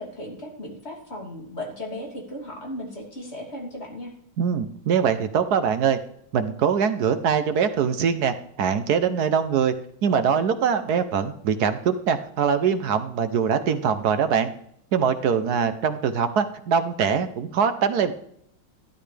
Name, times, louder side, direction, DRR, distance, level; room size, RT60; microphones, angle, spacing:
voice 1, 0.0-4.1, left 1 dB, 30° left, -1 dB, 3.1 m, -36 dB
voice 2, 4.4-6.0 6.3-9.7 10.0-14.5 14.9-18.1, right 7 dB, 60° right, 10 dB, 1.1 m, -23 dB
12.5 x 12.5 x 3.4 m, 0.69 s
omnidirectional pair, 2.3 m